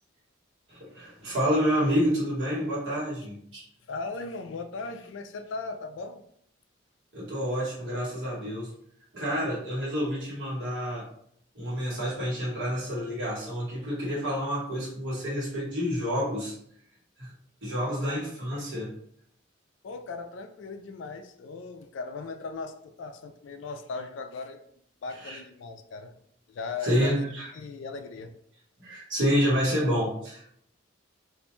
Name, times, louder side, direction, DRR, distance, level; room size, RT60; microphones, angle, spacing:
voice 1, 0.7-3.6 7.1-8.7 9.1-11.1 11.5-16.5 17.2-17.3 17.6-18.9 25.2-25.4 26.8-27.5 28.8-30.4, equal, 65° right, -8 dB, 1.2 m, -28 dB
voice 2, 3.9-6.2 18.1-18.2 19.8-24.6 25.0-26.1 26.5-27.3 27.5-28.3, left 4 dB, 65° left, 7 dB, 0.3 m, -38 dB
2.5 x 2.1 x 3.0 m, 0.66 s
head